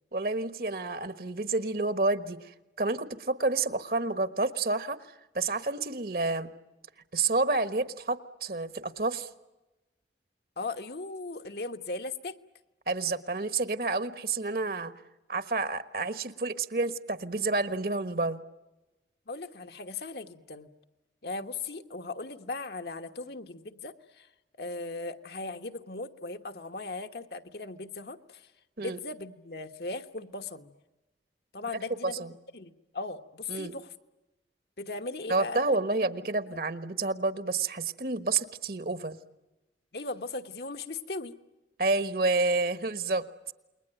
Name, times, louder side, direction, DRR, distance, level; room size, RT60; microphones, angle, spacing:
voice 1, 0.1-2.5 2.8-5.0 5.3-6.5 7.1-9.3 12.9-14.9 15.3-18.4 28.8-29.0 32.2-32.3 33.5-33.7 35.3-39.2 41.8-43.2, right 3 dB, 55° right, 12 dB, 1.3 m, -29 dB
voice 2, 10.6-12.4 19.3-20.7 21.2-24.3 24.5-28.5 28.8-30.7 31.5-32.3 32.5-33.9 34.8-35.6 36.0-36.1 36.5-36.6 39.9-41.3, left 3 dB, 65° left, 7 dB, 1.3 m, -38 dB
29.0 x 21.5 x 9.1 m, 1.0 s
head